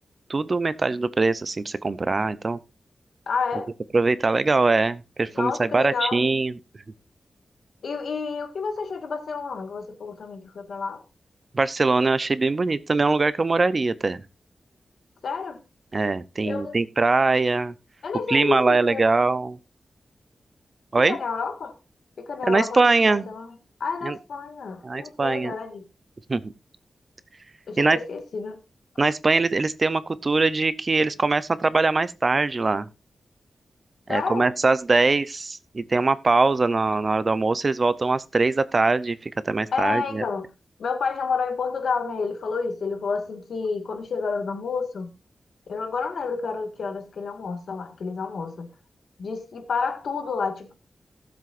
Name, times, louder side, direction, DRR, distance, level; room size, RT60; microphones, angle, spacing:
voice 1, 0.3-2.6 3.9-6.5 11.5-14.2 15.9-17.7 18.3-19.6 20.9-21.2 22.5-23.3 24.0-24.2 24.8-25.5 26.3-26.4 27.8-28.0 29.0-32.9 34.1-40.2, right 3 dB, 35° right, 0.7 m, -22 dB
voice 2, 3.3-3.7 5.3-6.2 7.8-11.0 15.2-15.6 16.4-16.8 18.0-19.1 21.1-21.7 22.2-23.5 23.8-25.8 27.7-28.6 34.1-34.5 39.7-40.5 40.8-45.1 45.7-48.7 49.2-50.7, left 5 dB, 85° left, 1.8 m, -30 dB
18.0 x 7.7 x 2.6 m
wide cardioid pair, 125°, 0 cm